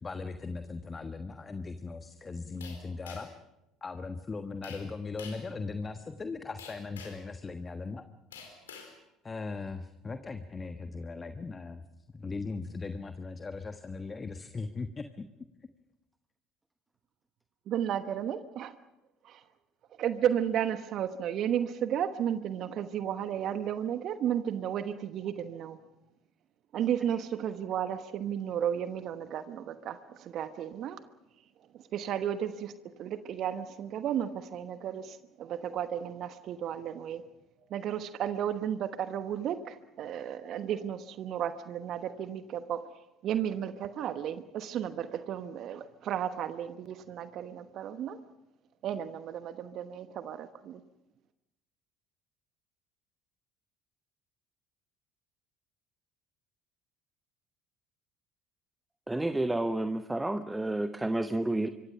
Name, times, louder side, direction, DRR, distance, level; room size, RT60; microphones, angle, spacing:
voice 1, 0.0-3.3 3.8-8.0 9.2-11.8 12.1-15.2, left 4 dB, 25° left, 8 dB, 1.3 m, -38 dB
sound 1, 2.6-3.4 4.6-4.9 5.2-5.5 6.6-7.3 8.3-8.9, left 6 dB, 80° left, 4.3 m, -47 dB
voice 2, 17.7-18.7 19.3-19.4 20.0-25.8 26.7-31.0 31.9-32.7 33.0-37.2 37.7-42.9 43.2-48.2 48.8-50.8, right 9 dB, 50° right, 11 dB, 1.1 m, -33 dB
voice 3, 59.1-61.7, right 2 dB, 10° right, 10 dB, 1.1 m, -30 dB
25.5 x 24.5 x 5.8 m, 0.94 s
figure-of-eight pair, 60°, 0 cm